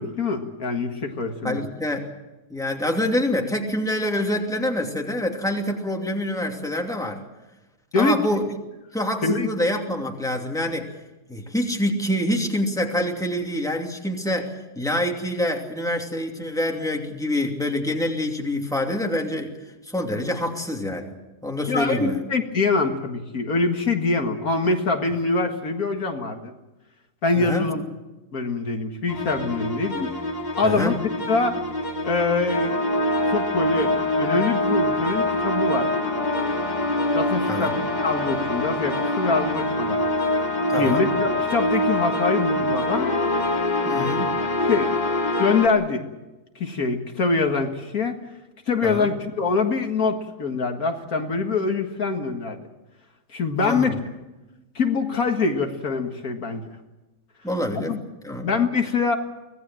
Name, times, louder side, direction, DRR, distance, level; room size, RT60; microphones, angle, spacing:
voice 1, 0.0-1.6 7.9-8.2 9.2-9.5 21.7-26.5 27.2-27.8 28.3-30.1 30.6-30.9 31.3-31.6 32.0-32.8 33.3-35.9 37.1-40.0 40.8-43.1 44.6-44.9 45.4-46.0 46.6-48.2 48.7-52.7 53.3-54.0 54.8-56.7 57.9-58.0 58.4-59.2, left 4 dB, 65° left, 4 dB, 2.2 m, -24 dB
voice 2, 1.4-2.1 2.5-7.2 7.9-8.4 8.9-10.9 11.3-19.5 19.9-21.1 21.4-22.2 27.4-27.7 30.6-30.9 37.5-37.8 40.7-41.1 43.8-44.3 48.8-49.1 53.6-54.0 57.4-57.9 58.2-58.5, left 1 dB, ahead, 1 dB, 2.8 m, -26 dB
sound 1, 29.1-45.7, left 1 dB, 25° left, 2.8 m, -24 dB
25.0 x 18.5 x 7.7 m, 1.1 s
omnidirectional pair, 1.7 m